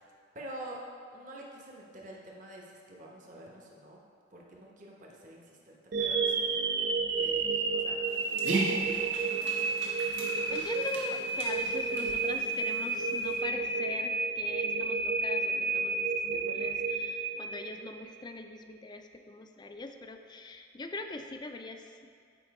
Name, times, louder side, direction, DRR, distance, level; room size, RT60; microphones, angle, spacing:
voice 1, 0.3-0.8 1.1-4.0 4.3-6.6 7.1-9.7, right 1 dB, 40° right, -2 dB, 1.0 m, -48 dB
sound 1, 5.9-18.0, right 4 dB, 60° right, 0.6 m, -31 dB
Dog, 8.1-13.4, right 2 dB, 80° right, 1.3 m, -38 dB
voice 2, 10.5-22.1, left 2 dB, 20° left, 6 dB, 0.4 m, -42 dB
8.9 x 4.4 x 4.7 m, 2.3 s
head